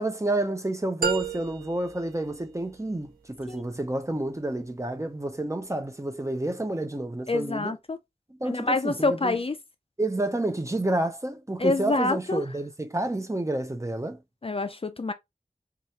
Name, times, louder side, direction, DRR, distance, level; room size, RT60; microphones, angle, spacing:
voice 1, 0.0-7.8 8.3-9.4 10.0-14.2, right 1 dB, 20° right, 0.6 m, -29 dB
sound 1, 1.0-3.1, right 7 dB, 75° right, 0.6 m, -33 dB
voice 2, 7.3-8.0 8.4-9.5 11.6-12.4 14.4-15.1, left 2 dB, 40° left, 0.4 m, -26 dB
3.2 x 2.3 x 2.8 m
wide cardioid pair, 45°, 15 cm